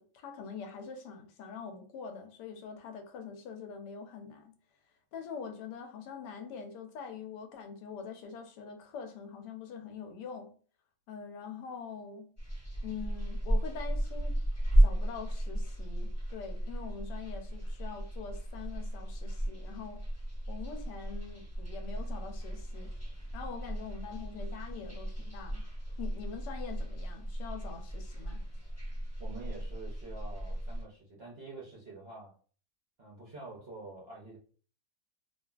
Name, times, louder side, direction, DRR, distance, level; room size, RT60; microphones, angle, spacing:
voice 1, 0.0-4.5 5.1-10.5 11.1-12.3 12.8-14.4 14.8-20.0 20.5-22.9 23.3-25.6 26.0-28.4, left 6 dB, 85° left, 1.2 m, -44 dB
sound 1, 12.4-30.8, right 1 dB, 10° left, 1.1 m, -34 dB
voice 2, 29.2-32.3 33.0-34.4, right 3 dB, 60° right, 0.6 m, -47 dB
2.7 x 2.5 x 2.3 m
omnidirectional pair, 1.7 m